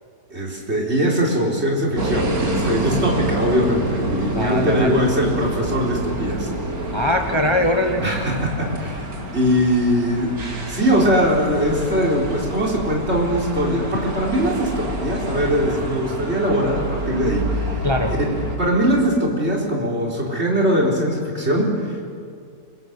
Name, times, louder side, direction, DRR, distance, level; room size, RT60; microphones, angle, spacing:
voice 1, 0.3-6.5 6.8-6.9 8.0-9.1 9.3-10.3 10.7-17.8 18.3-22.0, equal, 40° right, -1 dB, 4.5 m, -21 dB
sound 1, 2.0-18.6, right 1 dB, 60° right, 3.1 m, -27 dB
voice 2, 4.3-5.0 6.9-8.0 17.8-18.1, left 1 dB, 20° left, 4 dB, 1.0 m, -21 dB
26.0 x 23.0 x 8.1 m, 2.2 s
omnidirectional pair, 1.7 m